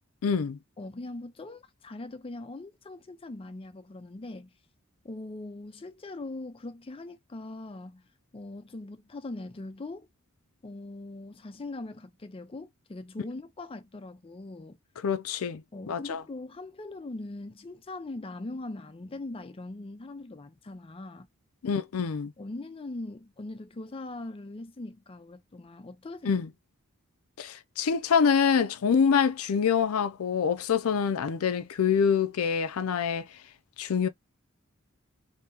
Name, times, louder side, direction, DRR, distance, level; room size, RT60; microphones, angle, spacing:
voice 1, 0.2-0.6 15.0-15.6 15.9-16.2 21.6-22.3 26.3-26.5 27.4-33.3 33.8-34.1, left 6 dB, 85° left, 0.5 m, -25 dB
voice 2, 0.8-4.5 5.0-8.0 8.3-10.1 10.6-14.8 15.7-21.3 22.4-26.4, left 2 dB, 25° left, 0.5 m, -41 dB
2.8 x 2.8 x 3.4 m
head